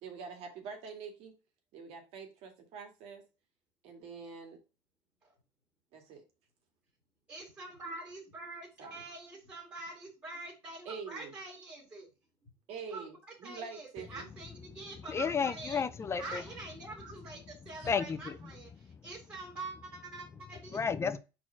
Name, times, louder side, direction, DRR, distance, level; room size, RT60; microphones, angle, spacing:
voice 1, 0.0-1.3 1.7-3.2 3.8-4.6 5.9-6.2 8.8-9.0 10.9-11.3 12.7-13.1 13.4-14.3 17.0-17.1 17.8-17.9, right 5 dB, 60° right, 2.1 m, -45 dB
voice 2, 7.3-12.1 12.4-12.5 12.9-15.8 16.2-20.8, right 2 dB, 20° right, 2.4 m, -45 dB
voice 3, 15.1-16.4 17.9-18.2 20.7-21.2, left 6 dB, 25° left, 0.5 m, -31 dB
4.5 x 4.3 x 5.7 m
cardioid pair, 135°, 11 cm